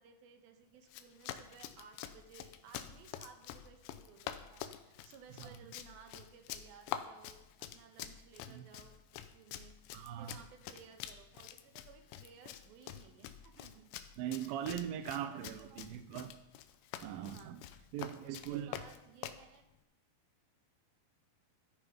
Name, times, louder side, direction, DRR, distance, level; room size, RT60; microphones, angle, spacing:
voice 1, 0.0-13.9 14.4-14.6 15.0-15.8 17.3-19.6, right 6 dB, 70° right, 6 dB, 2.6 m, -58 dB
Run, 0.8-19.5, left 11 dB, 85° left, 2.9 m, -47 dB
voice 2, 9.9-10.4 14.2-16.3 17.0-17.6 17.9-18.7, right 10 dB, 85° right, 10 dB, 2.1 m, -40 dB
13.5 x 9.3 x 5.2 m, 0.88 s
omnidirectional pair, 5.1 m